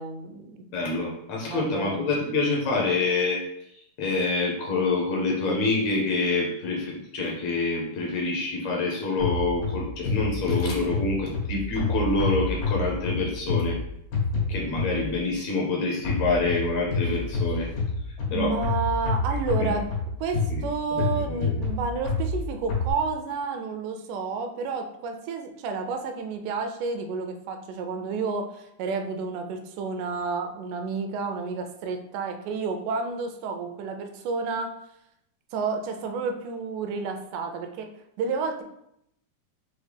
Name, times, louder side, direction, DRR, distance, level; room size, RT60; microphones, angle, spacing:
voice 1, 0.0-0.6 1.5-2.1 18.3-19.9 20.2-34.7 35.5-37.9 38.2-38.6, right 4 dB, 85° right, 5 dB, 2.0 m, -30 dB
voice 2, 0.7-3.4 4.0-13.8 14.5-17.7 18.3-18.5 20.5-20.6 21.0-21.6, left 3 dB, 70° left, -2 dB, 1.8 m, -26 dB
sound 1, 9.2-15.3 16.0-22.9, left 3 dB, 90° left, 2.9 m, -28 dB
6.2 x 2.1 x 3.4 m, 0.77 s
omnidirectional pair, 3.5 m